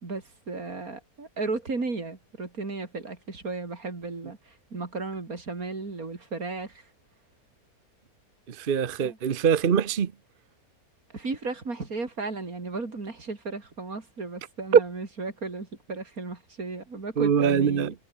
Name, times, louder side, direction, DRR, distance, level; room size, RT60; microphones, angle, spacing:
voice 1, 0.0-6.9 9.0-9.2 11.1-17.9, right 3 dB, 70° right, 4.0 m, -35 dB
voice 2, 8.5-10.1 17.2-17.9, right 7 dB, 45° right, 0.9 m, -24 dB
omnidirectional pair, 1.6 m